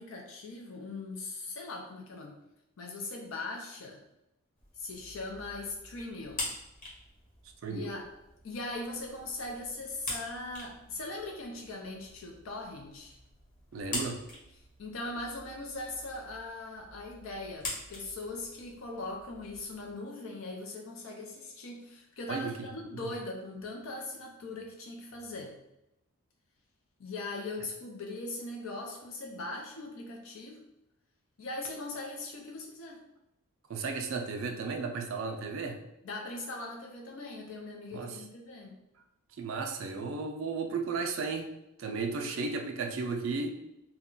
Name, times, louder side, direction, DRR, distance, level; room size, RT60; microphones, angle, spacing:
voice 1, 0.0-2.4 2.8-4.0 4.8-6.5 7.7-8.1 8.4-13.2 14.8-25.5 27.0-30.6 31.4-33.0 36.0-38.7, left 2 dB, 65° left, 0 dB, 0.4 m, -40 dB
sound 1, 4.6-19.9, left 2 dB, 40° left, 0.9 m, -45 dB
voice 2, 13.7-14.2 22.3-22.7 22.9-23.1 33.7-35.8 37.9-38.2 39.3-41.5 41.8-43.5, right 4 dB, 60° right, 3 dB, 0.3 m, -34 dB
2.3 x 2.1 x 3.7 m, 0.87 s
head